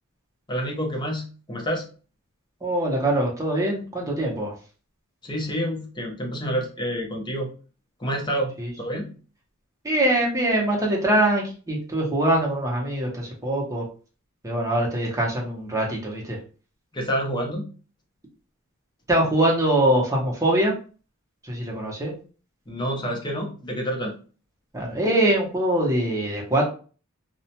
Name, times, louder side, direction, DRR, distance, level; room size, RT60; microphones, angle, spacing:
voice 1, 0.5-1.8 5.2-7.5 8.0-8.5 8.8-9.1 16.9-17.7 22.7-24.1, equal, 20° left, 1 dB, 0.6 m, -28 dB
voice 2, 2.6-4.5 8.6-8.7 9.8-13.8 14.4-16.4 19.1-20.7 21.4-22.1 24.7-26.6, right 1 dB, 15° right, -3 dB, 0.8 m, -23 dB
2.3 x 2.1 x 2.8 m, 0.37 s
head